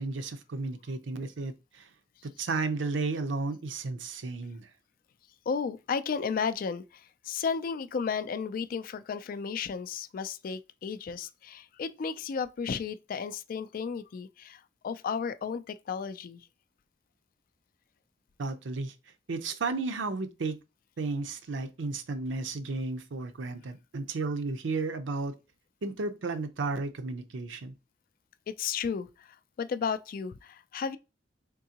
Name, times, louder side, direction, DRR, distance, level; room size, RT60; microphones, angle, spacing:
voice 1, 0.0-1.9 2.2-4.7 18.4-18.9 19.3-20.6 21.0-25.4 25.8-27.7, right 3 dB, 75° right, 0.6 m, -33 dB
voice 2, 5.5-16.5 28.5-31.0, left 6 dB, 50° left, 0.3 m, -34 dB
3.7 x 3.5 x 2.8 m
head